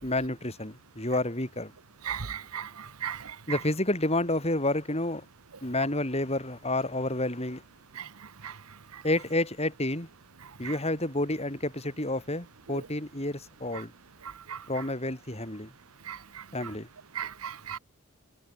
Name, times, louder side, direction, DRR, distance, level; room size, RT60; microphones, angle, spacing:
voice 1, 0.0-1.7 3.5-5.2 5.6-7.6 9.0-10.1 10.6-13.9 14.7-15.7 16.5-16.9, left 1 dB, 30° left, 5.7 m, -29 dB
voice 2, 2.1-2.7 3.0-3.2 14.5-14.6 16.1-16.2 17.2-17.8, right 8 dB, 75° right, 1.0 m, -35 dB
head